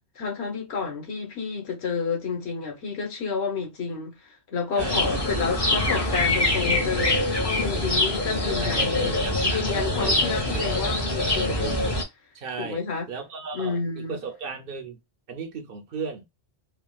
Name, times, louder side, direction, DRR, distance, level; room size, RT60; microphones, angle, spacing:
voice 1, 0.2-11.8 12.6-13.1 13.5-14.2, left 5 dB, 80° left, 1.2 m, -30 dB
voice 2, 4.7-5.9 8.4-10.7 11.5-11.8 12.3-12.8 13.1-15.0 15.3-16.3, right 5 dB, 60° right, 0.9 m, -36 dB
sound 1, 4.8-12.0, left 2 dB, 25° left, 0.7 m, -24 dB
3.4 x 2.3 x 2.3 m
omnidirectional pair, 1.1 m